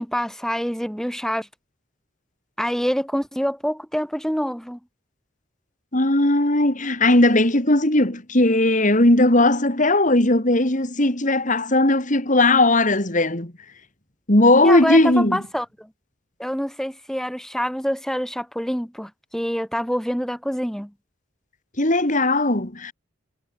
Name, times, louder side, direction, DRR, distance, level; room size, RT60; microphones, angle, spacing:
voice 1, 0.0-1.5 2.6-4.8 14.6-15.9 16.4-20.9, equal, ahead, 4.4 m, -26 dB
voice 2, 5.9-13.5 14.3-15.4 21.8-22.9, left 2 dB, 40° left, 3.4 m, -18 dB
head